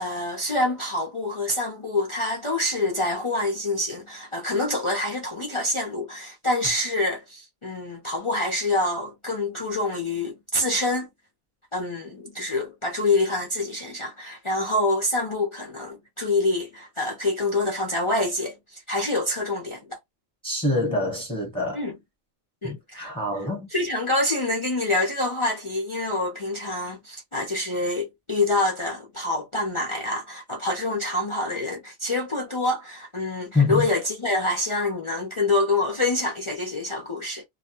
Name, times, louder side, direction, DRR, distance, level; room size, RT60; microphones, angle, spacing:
voice 1, 0.0-11.1 11.7-20.0 21.7-22.0 22.6-23.1 23.7-37.4, left 2 dB, 40° left, 0.4 m, -26 dB
voice 2, 20.4-21.9 22.6-23.7 33.5-33.9, left 3 dB, 5° left, 0.9 m, -25 dB
2.3 x 2.2 x 2.9 m
omnidirectional pair, 1.3 m